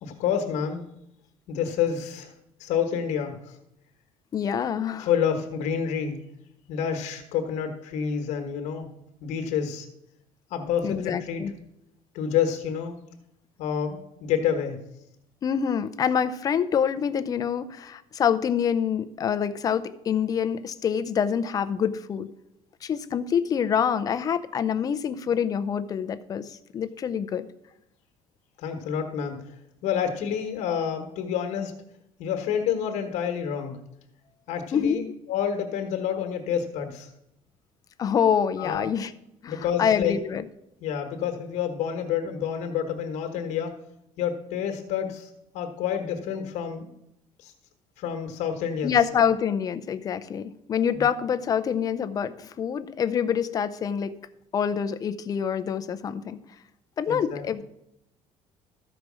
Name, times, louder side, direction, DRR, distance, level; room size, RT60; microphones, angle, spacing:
voice 1, 0.0-0.9 1.5-2.3 2.6-3.5 5.0-6.2 6.7-8.9 9.2-9.9 10.5-11.4 12.1-12.9 13.6-14.8 28.6-29.4 29.8-31.7 32.2-33.7 34.5-37.1 38.6-38.8 39.5-40.2 40.8-43.7 44.2-46.9 47.4-47.5 48.0-48.9 50.9-51.0 57.1-57.6, left 8 dB, 75° left, 5 dB, 1.3 m, -28 dB
voice 2, 4.3-5.1 10.8-11.5 15.4-22.3 22.8-27.5 34.7-35.1 38.0-39.1 39.4-40.4 48.8-54.2 54.5-56.4 57.0-57.6, left 7 dB, 30° left, 11 dB, 0.5 m, -26 dB
13.5 x 5.0 x 6.2 m, 0.82 s
cardioid pair, 165°, 12 cm